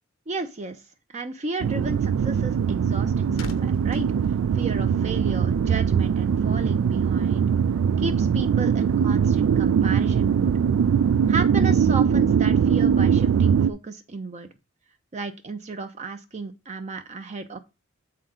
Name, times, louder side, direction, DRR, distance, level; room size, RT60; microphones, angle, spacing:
voice 1, 0.3-0.8 1.1-4.1 4.5-7.5 8.0-10.5 11.3-14.5 15.1-17.6, right 3 dB, 35° right, 7 dB, 0.6 m, -33 dB
sound 1, 1.6-13.7, right 7 dB, 80° right, 0.3 m, -21 dB
sound 2, 2.9-5.3 5.6-5.8, left 3 dB, 75° left, 0.8 m, -43 dB
7.7 x 5.7 x 3.7 m, 0.28 s
head